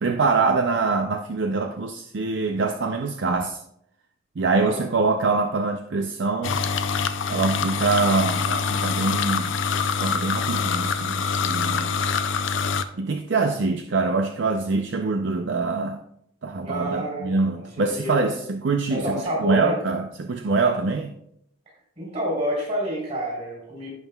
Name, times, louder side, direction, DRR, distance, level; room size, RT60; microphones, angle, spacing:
voice 1, 0.0-3.6 4.4-6.6 7.3-9.6 10.0-11.9 12.9-16.0 16.4-21.1, right 3 dB, 60° right, 5 dB, 0.5 m, -24 dB
sound 1, 6.4-12.8, left 5 dB, 70° left, 0.5 m, -25 dB
voice 2, 16.6-18.4 18.9-19.8 22.0-23.9, equal, 35° right, -3 dB, 3.7 m, -29 dB
16.0 x 5.4 x 2.3 m, 0.74 s
head